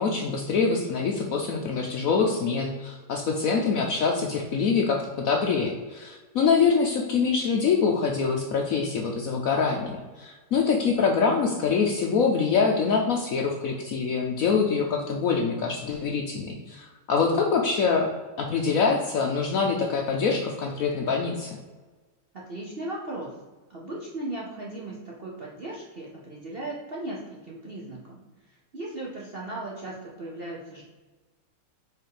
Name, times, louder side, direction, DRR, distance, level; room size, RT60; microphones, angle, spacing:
voice 1, 0.0-18.1 18.4-21.6, left 5 dB, 65° left, 2 dB, 0.9 m, -25 dB
voice 2, 22.5-23.3 23.7-30.8, right 2 dB, 45° right, -3 dB, 0.8 m, -37 dB
4.7 x 4.1 x 4.9 m, 1.3 s
omnidirectional pair, 2.0 m